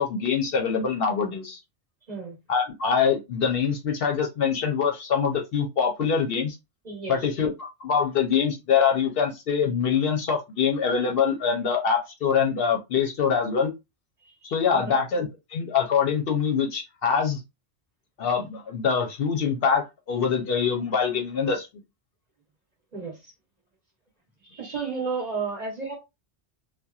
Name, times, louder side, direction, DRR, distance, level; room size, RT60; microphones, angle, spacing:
voice 1, 0.0-1.6 2.5-6.6 7.1-7.5 7.8-13.7 14.4-17.4 18.2-21.7, left 6 dB, 65° left, 0.7 m, -24 dB
voice 2, 6.8-7.3 14.2-14.3 14.7-15.0 22.9-23.2 24.5-25.9, right 4 dB, 40° right, 0.9 m, -32 dB
2.8 x 2.2 x 2.3 m
omnidirectional pair, 1.1 m